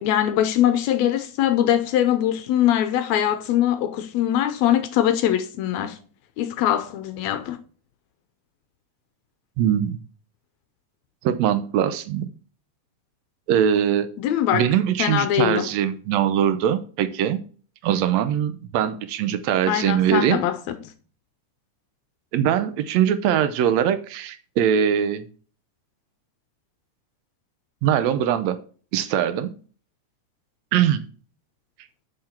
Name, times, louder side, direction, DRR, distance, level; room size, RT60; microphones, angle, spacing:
voice 1, 0.0-6.0 6.4-7.6 14.2-14.7 15.0-15.7 19.7-20.8, left 11 dB, 80° left, 1.6 m, -22 dB
voice 2, 9.6-10.0 11.2-12.3 13.5-14.1 14.5-17.4 17.8-20.4 22.3-25.3 27.8-28.6 28.9-29.5 30.7-31.0, right 9 dB, 75° right, 1.6 m, -22 dB
6.6 x 5.8 x 4.3 m
omnidirectional pair, 3.6 m